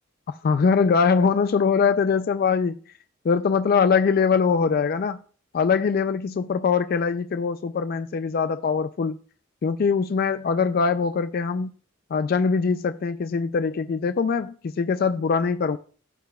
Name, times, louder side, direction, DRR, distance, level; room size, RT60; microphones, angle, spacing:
voice 1, 0.3-2.8 3.2-5.2 5.5-9.2 9.6-11.7 12.1-15.8, left 5 dB, 50° left, 0.3 m, -22 dB
16.0 x 6.8 x 2.3 m
head